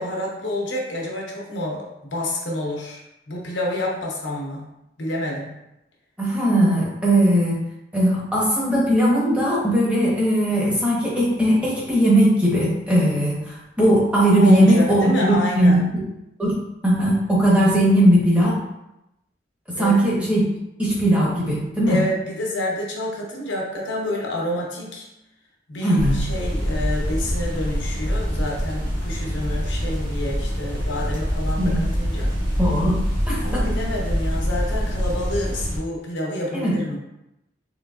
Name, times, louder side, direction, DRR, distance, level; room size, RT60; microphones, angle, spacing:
voice 1, 0.0-1.8 2.1-3.0 3.3-4.7 5.0-5.5 14.4-15.8 19.8-20.1 21.9-25.0 25.7-32.3 33.4-37.0, left 1 dB, 80° left, -2 dB, 0.9 m, -28 dB
voice 2, 6.2-7.6 7.9-15.8 16.4-16.5 16.8-18.5 19.8-20.4 20.8-22.0 25.8-26.2 31.6-31.8 32.6-33.7 36.5-36.7, right 1 dB, 5° right, -7 dB, 1.0 m, -19 dB
sound 1, 26.0-35.8, equal, 80° right, 1.2 m, -25 dB
3.9 x 3.3 x 2.4 m, 0.88 s
head